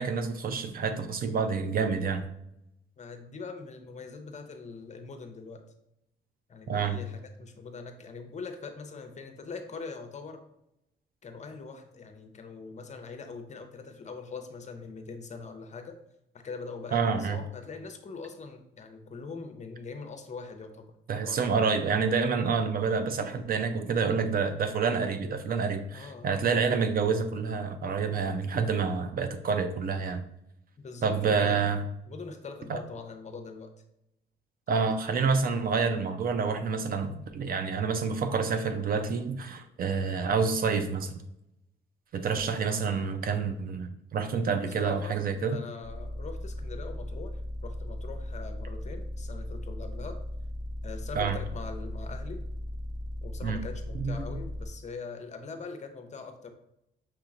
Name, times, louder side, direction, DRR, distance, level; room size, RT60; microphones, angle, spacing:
voice 1, 0.0-2.3 6.7-7.0 16.9-17.4 21.1-30.2 31.0-31.8 32.7-32.8 34.7-41.1 42.1-45.6 51.2-51.4 53.4-53.6 53.9-54.2, right 5 dB, 45° right, 8 dB, 0.4 m, -28 dB
voice 2, 3.0-5.6 6.5-10.4 11.2-16.0 16.3-20.9 21.2-21.5 25.9-26.3 30.8-31.6 32.1-33.7 34.8-34.9 44.6-45.2 45.5-50.2 50.8-52.4 53.2-56.5, left 4 dB, 35° left, 6 dB, 0.6 m, -42 dB
sound 1, 45.8-54.7, left 1 dB, 25° right, 0.9 m, -37 dB
5.7 x 2.9 x 2.4 m, 0.82 s
cardioid pair, 90°, 20 cm